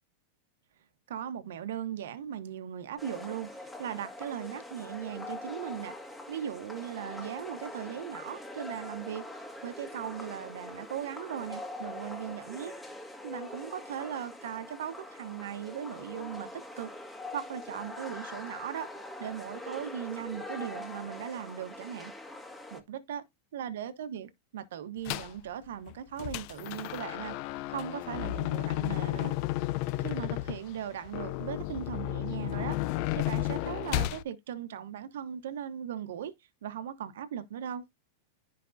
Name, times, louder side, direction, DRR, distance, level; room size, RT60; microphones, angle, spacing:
voice 1, 1.1-6.0 6.3-9.3 9.6-12.7 13.2-16.9 17.3-18.9 19.2-22.1 22.7-23.2 23.5-27.4 27.7-29.4 30.0-32.8 33.1-36.3 36.6-37.8, right 9 dB, 75° right, 1.0 m, -38 dB
sound 1, 3.0-22.8, left 1 dB, 5° left, 1.7 m, -43 dB
sound 2, 25.0-25.4 25.9-34.2, left 15 dB, 55° left, 0.4 m, -33 dB
10.5 x 5.2 x 2.6 m
hypercardioid pair, 120°, 0 cm